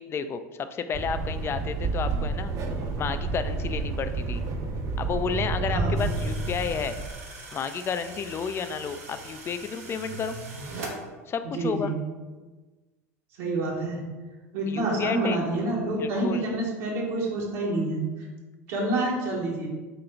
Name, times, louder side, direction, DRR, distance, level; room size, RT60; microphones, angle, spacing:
voice 1, 0.0-2.5 3.0-4.4 5.0-7.0 7.5-10.4 11.3-11.9 14.6-15.4 16.0-16.5, left 6 dB, 30° left, 10 dB, 0.4 m, -31 dB
sound 1, 0.9-7.1, right 3 dB, 45° right, 0.7 m, -30 dB
voice 2, 5.7-6.0 11.5-12.0 13.4-14.0 14.5-18.3 18.7-19.7, right 2 dB, 65° right, -4 dB, 1.1 m, -28 dB
sound 2, 6.0-11.0, right 3 dB, 85° right, 0.9 m, -41 dB
3.9 x 2.8 x 4.4 m, 1.3 s
hypercardioid pair, 85°, 8 cm